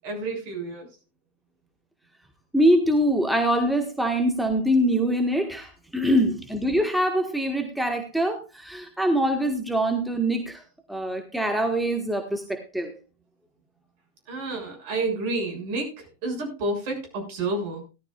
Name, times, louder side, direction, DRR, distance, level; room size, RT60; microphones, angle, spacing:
voice 1, 0.0-0.9 14.3-17.8, right 2 dB, 50° right, 3 dB, 6.7 m, -30 dB
voice 2, 2.5-10.6 10.9-12.9, equal, ahead, 4 dB, 1.6 m, -24 dB
18.0 x 12.5 x 2.4 m, 0.30 s
figure-of-eight pair, 90°, 0 cm